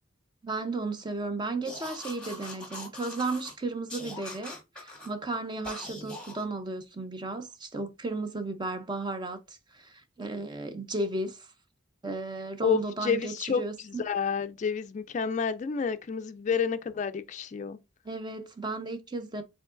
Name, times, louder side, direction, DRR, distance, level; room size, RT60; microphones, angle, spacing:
voice 1, 0.4-11.5 12.0-13.7 18.0-19.4, right 2 dB, 20° right, 0.5 m, -34 dB
sound 1, 1.6-3.5 3.9-5.1 5.6-6.4, left 1 dB, 5° left, 1.4 m, -42 dB
voice 2, 12.6-17.8, left 6 dB, 35° left, 0.3 m, -30 dB
4.7 x 3.7 x 2.4 m
head